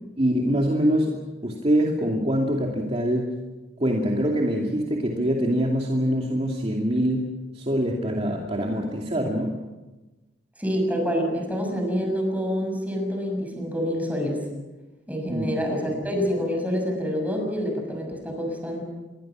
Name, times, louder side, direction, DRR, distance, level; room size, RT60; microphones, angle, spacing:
voice 1, 0.2-3.4 3.8-9.6 15.3-15.5, equal, 35° right, 0 dB, 2.5 m, -24 dB
voice 2, 10.6-14.4 15.1-18.8, equal, 10° right, 2 dB, 6.7 m, -27 dB
27.0 x 22.5 x 6.2 m, 1.1 s
head